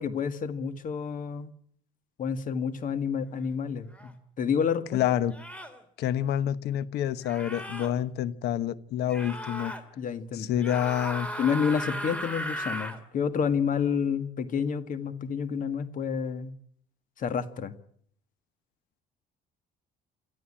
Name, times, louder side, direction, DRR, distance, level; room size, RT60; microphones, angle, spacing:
voice 1, 0.0-1.5 2.2-5.0 10.0-10.5 11.4-16.5 17.2-17.7, left 6 dB, 50° left, 11 dB, 1.8 m, -29 dB
sound 1, 3.9-4.1 5.3-5.8 7.2-7.9 9.1-9.8 10.6-13.0, equal, 5° left, 3.1 m, -36 dB
voice 2, 4.9-5.4 6.0-9.7 10.3-11.3, left 10 dB, 75° left, 16 dB, 1.1 m, -28 dB
28.0 x 13.5 x 8.7 m, 0.66 s
cardioid pair, 110°, 17 cm